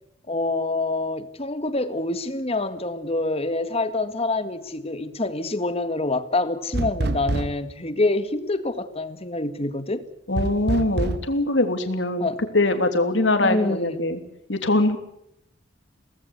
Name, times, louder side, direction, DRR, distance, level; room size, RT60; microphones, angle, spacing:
voice 1, 0.3-10.1 12.2-12.4 13.4-14.0, left 2 dB, 35° left, 11 dB, 1.9 m, -26 dB
sound 1, 6.7-7.7 10.4-11.3, right 2 dB, 60° right, 1.1 m, -26 dB
voice 2, 10.3-14.2 14.5-15.0, left 2 dB, 70° left, 7 dB, 3.1 m, -22 dB
24.0 x 19.0 x 8.3 m, 0.77 s
head